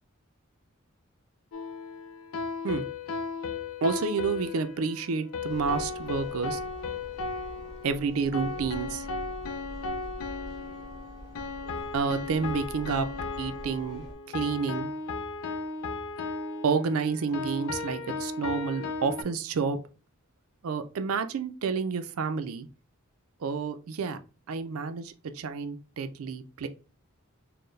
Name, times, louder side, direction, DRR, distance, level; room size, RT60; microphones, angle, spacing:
sound 1, 1.5-19.2, left 4 dB, 70° left, 0.5 m, -36 dB
voice 1, 3.8-6.6 7.8-9.1 11.9-13.1 13.4-14.9 16.6-19.8 20.6-22.7 23.4-24.2 24.5-26.7, right 5 dB, 75° right, 9 dB, 0.4 m, -30 dB
sound 2, 5.5-14.1, equal, ahead, 1.7 m, -45 dB
4.3 x 2.1 x 3.2 m, 0.34 s
head